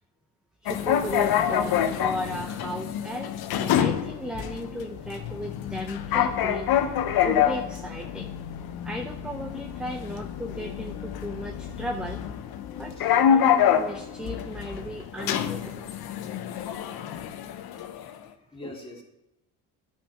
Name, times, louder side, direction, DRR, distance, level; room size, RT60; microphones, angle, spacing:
voice 1, 0.6-6.9 7.2-8.3 8.8-12.2 12.8-12.9 13.2-15.9 18.6-18.8, equal, ahead, 3 dB, 0.7 m, -35 dB
sound 1, 0.7-18.2, left 9 dB, 65° left, 0.9 m, -27 dB
voice 2, 18.0-19.0, left 1 dB, 15° left, -1 dB, 2.4 m, -44 dB
10.0 x 5.0 x 5.5 m, 0.91 s
supercardioid pair, 80°, 39 cm